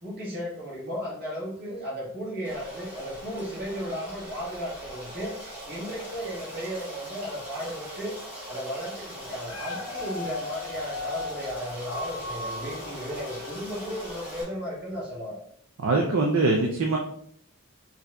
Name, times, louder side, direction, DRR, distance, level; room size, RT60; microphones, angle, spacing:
voice 1, 0.0-8.2 8.5-15.4, equal, 45° right, -5 dB, 1.4 m, -35 dB
Stream, 2.4-14.4, equal, 10° right, 1.1 m, -41 dB
Dog, 9.2-14.6 15.1-15.2, left 3 dB, 65° left, 0.4 m, -38 dB
voice 2, 15.8-17.0, right 3 dB, 60° right, 1 dB, 0.4 m, -23 dB
4.8 x 2.7 x 2.3 m, 0.66 s
head